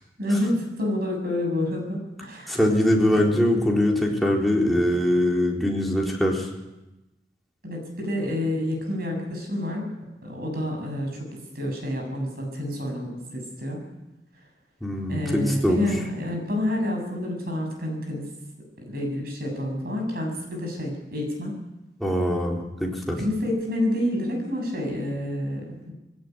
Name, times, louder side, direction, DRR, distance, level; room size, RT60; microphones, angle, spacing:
voice 1, 0.2-2.6 3.1-3.2 7.6-9.9 10.2-11.3 11.5-13.8 15.1-18.2 18.9-21.6 23.2-25.9, left 1 dB, 55° right, 2 dB, 7.7 m, -28 dB
voice 2, 2.5-6.5 14.8-15.9 22.0-23.2, left 1 dB, ahead, -2 dB, 4.1 m, -22 dB
20.5 x 17.0 x 9.5 m, 0.98 s
head